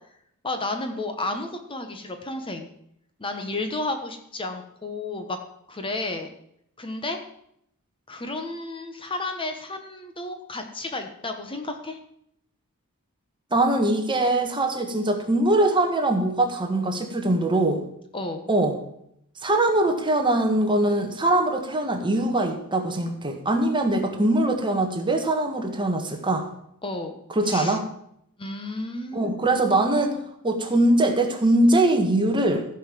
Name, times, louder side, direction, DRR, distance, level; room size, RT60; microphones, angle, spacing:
voice 1, 0.4-2.7 3.2-5.4 5.7-6.3 6.8-7.2 8.1-12.0 18.1-18.5 26.8-27.1 27.5-27.8 28.4-29.4, left 2 dB, 25° left, 6 dB, 1.1 m, -32 dB
voice 2, 13.5-17.8 18.5-18.8 19.4-26.5 27.3-27.8 29.1-30.2 30.4-32.7, right 1 dB, 20° right, 4 dB, 1.5 m, -22 dB
15.0 x 5.5 x 7.4 m, 0.73 s
head